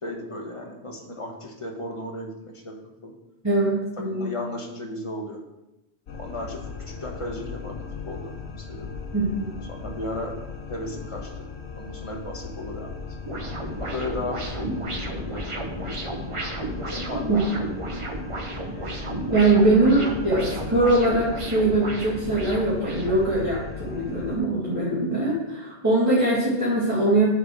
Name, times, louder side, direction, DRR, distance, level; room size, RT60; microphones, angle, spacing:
voice 1, 0.0-2.8 3.0-3.1 4.0-5.4 6.2-8.9 9.7-10.4 10.7-11.3 11.8-13.0 13.8-16.2 16.9-17.5, left 1 dB, 30° left, 0 dB, 1.3 m, -35 dB
voice 2, 3.4-4.2 9.1-9.5 17.3-17.6 19.3-27.3, right 2 dB, 15° right, -11 dB, 2.2 m, -22 dB
sound 1, 6.1-24.4, left 5 dB, 85° left, 0.9 m, -38 dB
sound 2, 13.2-23.3, right 1 dB, 35° right, 0.9 m, -33 dB
7.0 x 4.2 x 6.1 m, 0.96 s
omnidirectional pair, 1.0 m